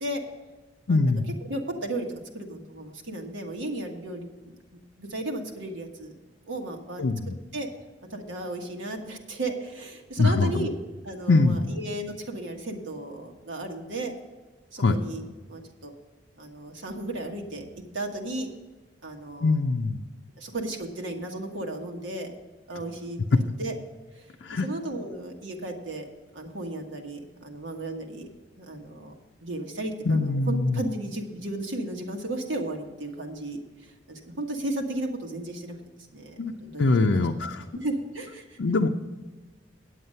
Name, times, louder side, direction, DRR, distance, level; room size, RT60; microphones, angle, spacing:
voice 1, 0.9-1.3 7.0-7.4 10.2-10.7 11.3-11.7 14.8-15.0 19.4-20.0 24.4-24.7 30.1-30.8 36.4-36.5 36.8-37.6 38.6-38.9, left 3 dB, 65° left, 3 dB, 0.5 m, -23 dB
voice 2, 1.4-2.1 2.3-4.3 4.7-6.1 6.5-7.1 7.5-7.7 8.1-10.8 11.0-14.1 14.7-15.2 15.5-15.9 16.4-18.5 19.0-19.5 20.4-22.3 22.7-23.7 24.2-24.3 24.5-26.1 26.3-28.3 28.6-29.1 29.4-33.6 34.1-35.7 36.1-37.5 37.7-38.6, right 1 dB, 75° right, 2 dB, 1.5 m, -34 dB
9.5 x 8.2 x 5.5 m, 1.3 s
head